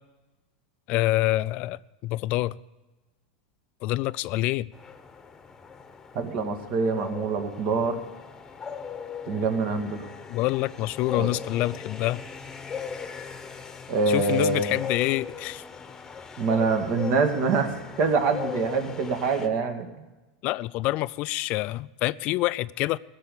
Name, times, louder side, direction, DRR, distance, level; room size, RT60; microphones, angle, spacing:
voice 1, 0.9-2.6 3.8-4.7 10.3-12.2 14.1-15.6 20.4-23.0, left 18 dB, 50° left, 0.3 m, -26 dB
sound 1, 4.7-19.5, left 6 dB, 20° left, 1.0 m, -39 dB
voice 2, 6.2-8.0 9.3-10.1 11.2-11.3 13.9-14.8 16.4-17.7 18.0-19.9, right 4 dB, 55° right, 1.9 m, -25 dB
15.0 x 6.8 x 8.4 m
hypercardioid pair, 110°, 3 cm